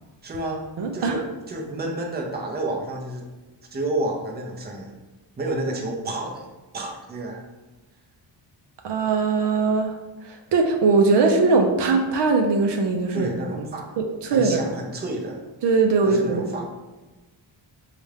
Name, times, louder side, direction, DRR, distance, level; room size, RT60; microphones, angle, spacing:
voice 1, 0.2-0.7 0.9-3.2 3.7-4.9 5.4-6.5 6.7-7.4 13.1-14.0 14.3-15.5 16.0-16.6, right 2 dB, 20° right, 0 dB, 0.5 m, -30 dB
voice 2, 0.8-1.1 8.8-9.9 10.2-13.3 13.6-13.7 14.0-14.6 15.6-16.5, right 4 dB, 65° right, 3 dB, 0.5 m, -20 dB
4.1 x 2.4 x 3.3 m, 1.2 s
wide cardioid pair, 125°, 45 cm